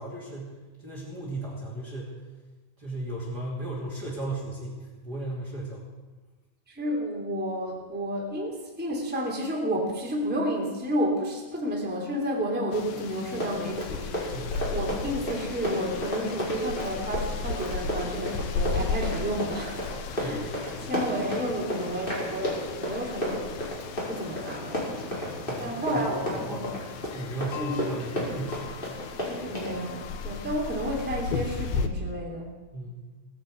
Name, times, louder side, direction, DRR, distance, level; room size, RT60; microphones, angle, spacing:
voice 1, 0.0-2.2 2.8-5.8 14.3-14.7 20.2-20.6 25.4-28.7 32.7-33.0, right 2 dB, 30° right, -4 dB, 3.1 m, -36 dB
voice 2, 6.7-14.4 14.7-20.5 20.9-23.8 24.1-26.7 27.6-27.8 29.3-32.5, equal, 5° right, -3 dB, 2.8 m, -31 dB
sound 1, 12.7-31.9, left 4 dB, 80° left, 2.7 m, -36 dB
Run, 13.2-29.7, left 1 dB, 15° left, 4.7 m, -32 dB
18.0 x 9.8 x 8.2 m, 1.2 s
omnidirectional pair, 4.3 m